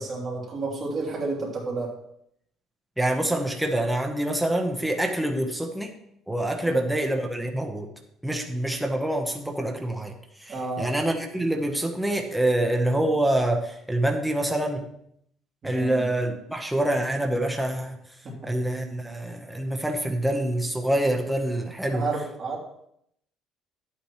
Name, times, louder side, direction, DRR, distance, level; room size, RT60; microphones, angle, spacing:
voice 1, 0.0-1.9 6.6-6.8 10.5-10.9 15.6-16.0 18.2-18.5 21.9-22.6, right 3 dB, 30° right, -3 dB, 2.9 m, -31 dB
voice 2, 3.0-5.9 6.3-7.9 8.2-10.1 10.4-14.8 15.6-18.0 18.4-22.1, right 1 dB, 5° right, 2 dB, 0.9 m, -26 dB
11.5 x 8.6 x 3.1 m, 0.72 s
cardioid pair, 155°, 0 cm